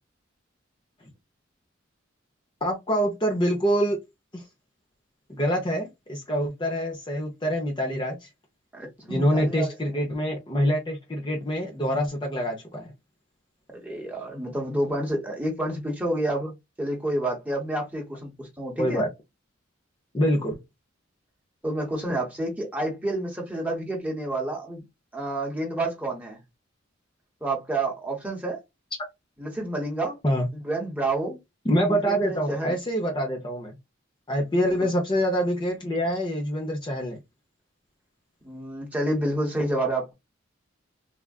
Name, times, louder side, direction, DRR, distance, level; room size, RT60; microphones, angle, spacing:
voice 1, 2.6-4.0 4.3-4.4 5.3-8.3 9.1-12.9 18.8-19.1 20.1-20.6 30.2-30.5 31.6-33.8 34.3-37.2, equal, 25° left, 0.7 m, -25 dB
voice 2, 8.7-9.7 13.7-16.5 16.8-19.0 21.6-24.8 25.1-26.4 27.4-28.6 29.4-30.2 30.5-31.4 31.9-32.8 34.8-34.9 38.4-40.1, right 1 dB, 10° right, 1.1 m, -29 dB
3.5 x 2.4 x 2.3 m
head